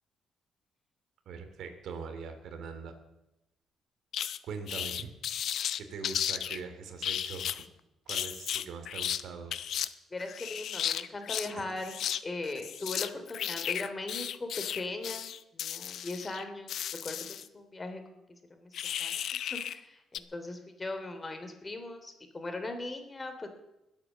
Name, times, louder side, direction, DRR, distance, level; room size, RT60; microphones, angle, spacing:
voice 1, 1.2-3.0 4.4-5.1 5.8-7.6 8.1-9.6 11.5-11.6, right 5 dB, 75° right, 6 dB, 2.9 m, -42 dB
sound 1, 4.1-4.4 4.7-6.6 7.0-7.6 8.1-9.2 9.5-9.9 10.2-11.5 11.8-12.2 12.5-17.5 18.7-19.8 20.1-20.2, left 10 dB, 70° left, 0.7 m, -34 dB
voice 2, 10.1-12.0 12.2-18.2 18.5-18.7 19.0-19.2 19.5-23.5, left 2 dB, 25° left, 7 dB, 3.2 m, -39 dB
21.0 x 8.9 x 7.4 m, 0.93 s
cardioid pair, 90°, 0 cm